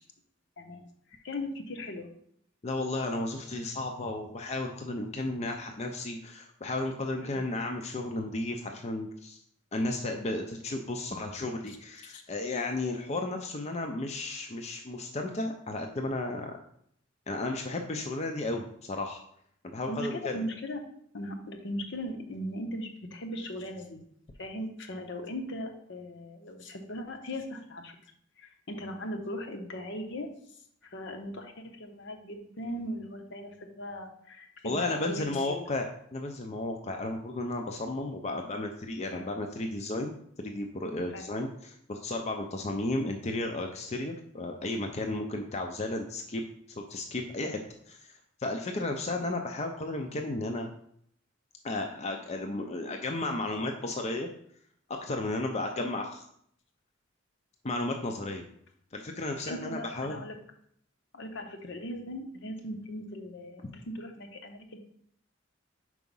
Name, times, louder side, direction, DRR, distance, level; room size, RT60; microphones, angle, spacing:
voice 1, 1.1-2.1 7.2-7.5 12.0-12.2 19.9-20.8 21.1-24.0 24.4-28.0 28.4-30.3 30.9-35.6 39.1-39.3 41.1-41.3 55.8-55.9 59.5-60.4 61.1-64.8, left 1 dB, 65° left, 4 dB, 0.9 m, -39 dB
voice 2, 2.6-9.4 9.7-16.6 17.3-19.2 19.7-20.4 34.6-35.9 36.1-40.1 40.4-46.4 46.8-47.6 47.9-48.1 48.4-50.7 51.6-54.3 54.9-56.2 57.6-58.4 58.9-60.3, left 2 dB, 35° left, 4 dB, 0.5 m, -33 dB
4.8 x 4.7 x 5.4 m, 0.67 s
head